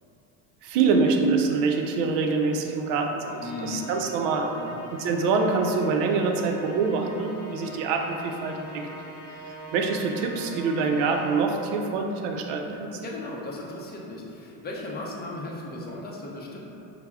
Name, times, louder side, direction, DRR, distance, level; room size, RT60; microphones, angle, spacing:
voice 1, 0.6-4.6 4.9-9.0 9.5-13.0, right 4 dB, 75° right, 3 dB, 0.5 m, -25 dB
Musical instrument, 3.2-11.7, right 1 dB, 75° left, 0.8 m, -43 dB
voice 2, 3.4-3.9 4.5-4.8 13.0-16.7, left 2 dB, 25° left, -3 dB, 0.6 m, -36 dB
5.4 x 2.1 x 2.3 m, 2.9 s
supercardioid pair, 100°, 42 cm